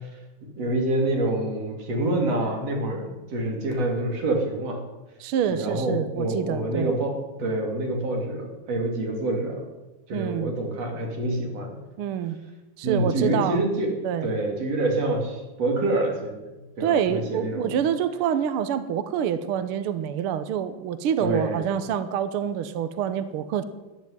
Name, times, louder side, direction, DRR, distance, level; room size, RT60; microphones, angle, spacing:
voice 1, 0.4-4.8 5.5-9.6 10.1-11.8 12.8-17.7 21.2-21.6, right 2 dB, 55° right, 2 dB, 3.8 m, -27 dB
voice 2, 5.2-6.9 10.1-10.5 12.0-12.4 12.8-13.6 14.0-14.3 16.8-23.6, right 9 dB, 75° right, 12 dB, 1.2 m, -26 dB
14.0 x 9.9 x 9.5 m, 1.1 s
omnidirectional pair, 3.6 m